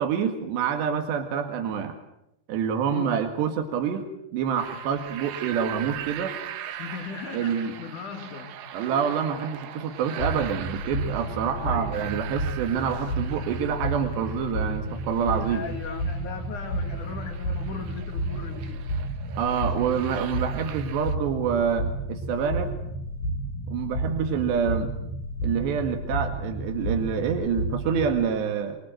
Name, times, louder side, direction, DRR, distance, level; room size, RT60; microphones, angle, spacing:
voice 1, 0.0-2.0 2.5-4.1 4.3-6.4 7.3-7.7 8.7-15.6 19.4-22.7 23.7-24.9 25.4-28.8, right 7 dB, 90° right, 4.2 m, -27 dB
voice 2, 2.9-3.2 6.8-8.7 11.6-12.0 15.5-18.9, left 5 dB, 55° left, 3.0 m, -38 dB
sound 1, 4.6-21.1, right 10 dB, 75° right, 3.4 m, -41 dB
sound 2, 10.2-28.3, right 1 dB, 85° left, 9.4 m, -31 dB
24.5 x 24.0 x 7.9 m
omnidirectional pair, 4.8 m